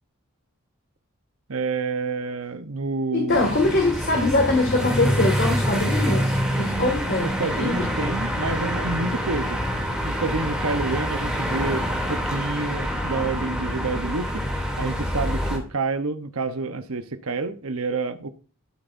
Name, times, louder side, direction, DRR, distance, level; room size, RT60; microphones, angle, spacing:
voice 1, 1.5-3.5 6.7-9.6 10.0-18.3, right 3 dB, 85° right, 1.0 m, -29 dB
voice 2, 3.1-7.3 7.6-7.9, left 2 dB, 50° left, 2.0 m, -23 dB
In a bench on the street next to a road at night in Madrid, 3.3-15.6, equal, 5° right, 2.9 m, -26 dB
12.5 x 8.2 x 2.6 m
head